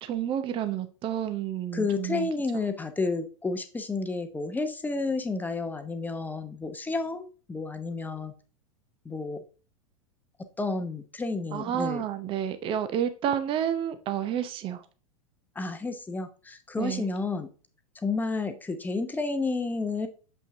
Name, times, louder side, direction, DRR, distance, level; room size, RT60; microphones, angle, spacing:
voice 1, 0.0-2.3 11.5-14.8 16.8-17.1, right 10 dB, 30° right, 10 dB, 0.7 m, -30 dB
voice 2, 1.7-8.3 9.0-9.4 10.6-12.1 15.5-17.5 18.0-20.1, left 3 dB, 10° left, 8 dB, 0.9 m, -31 dB
7.4 x 5.5 x 2.7 m, 0.36 s
figure-of-eight pair, 95°, 18 cm